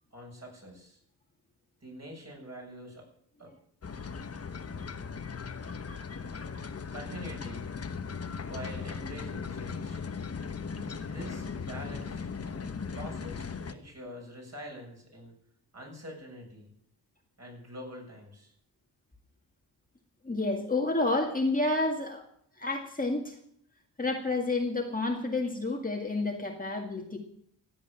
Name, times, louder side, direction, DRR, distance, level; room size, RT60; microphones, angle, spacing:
voice 1, 0.1-1.0 1.8-3.1 3.4-3.5 6.9-7.7 8.5-10.0 11.0-15.4 15.7-16.7 17.4-18.5, equal, 40° right, -1 dB, 7.4 m, -45 dB
sound 1, 3.8-13.7, left 5 dB, 35° left, 1.1 m, -38 dB
voice 2, 20.2-22.3 22.6-23.4 24.0-27.2, left 2 dB, 20° left, 1 dB, 1.9 m, -29 dB
15.5 x 8.0 x 8.8 m, 0.68 s
cardioid pair, 90°, 41 cm